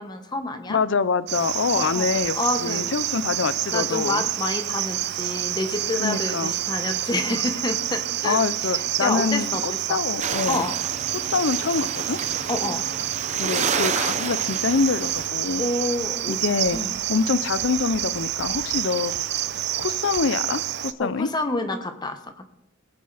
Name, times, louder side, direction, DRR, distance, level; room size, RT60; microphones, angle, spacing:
voice 1, 0.0-0.8 1.8-2.1 2.3-2.9 3.1-3.2 3.7-9.6 9.9-10.0 10.5-10.7 12.5-12.8 15.6-16.4 16.7-16.9 21.0-22.5, left 2 dB, 20° left, 7 dB, 1.1 m, -28 dB
voice 2, 0.7-4.2 6.0-6.5 8.2-10.6 11.1-12.2 13.3-15.6 16.3-16.8 17.1-19.1 19.8-21.3, left 5 dB, 65° left, 15 dB, 0.5 m, -25 dB
Cricket, 1.3-20.9, right 13 dB, 55° right, 0.5 m, -28 dB
sound 1, 10.2-15.3, right 5 dB, 35° right, 0.9 m, -30 dB
19.0 x 8.5 x 4.0 m, 0.78 s
head